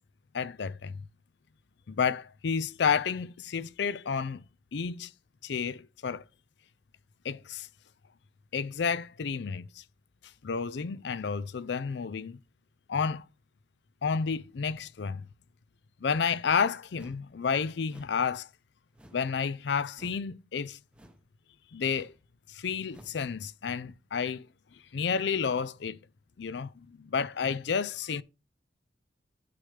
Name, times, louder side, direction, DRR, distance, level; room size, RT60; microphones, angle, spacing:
voice 1, 0.3-1.0 1.9-4.4 4.7-5.1 5.4-6.2 7.2-7.7 8.5-9.8 10.4-12.4 12.9-13.2 14.0-15.3 16.0-18.5 19.1-20.8 21.7-22.1 22.5-24.5 24.9-26.0 26.4-28.2, left 6 dB, 65° left, 0.5 m, -31 dB
sound 1, 17.0-17.3 17.9-18.2 18.9-19.4 19.9-20.3 20.9-21.3 21.9-22.2 22.9-23.2, equal, 5° right, 0.8 m, -53 dB
9.6 x 7.8 x 3.3 m
head